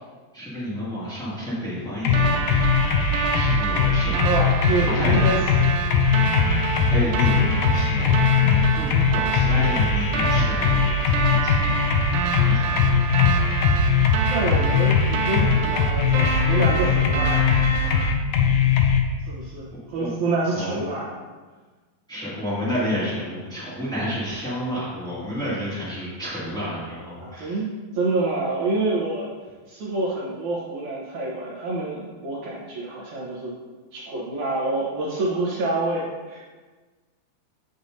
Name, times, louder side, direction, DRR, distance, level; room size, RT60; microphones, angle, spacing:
voice 1, 0.3-2.6 3.1-4.3 4.8-5.3 6.8-11.8 12.3-13.3 18.4-18.7 20.0-20.1 20.5-20.8 22.1-27.6, equal, ahead, -9 dB, 1.0 m, -31 dB
sound 1, 2.0-19.0, left 6 dB, 80° left, 1.9 m, -20 dB
sound 2, 2.1-18.1, right 5 dB, 80° right, 2.4 m, -27 dB
voice 2, 4.2-5.8 14.3-18.1 19.2-21.1 27.2-29.3 29.7-33.5 33.9-36.4, right 2 dB, 65° right, -6 dB, 2.0 m, -27 dB
7.8 x 6.8 x 2.6 m, 1.4 s
omnidirectional pair, 4.2 m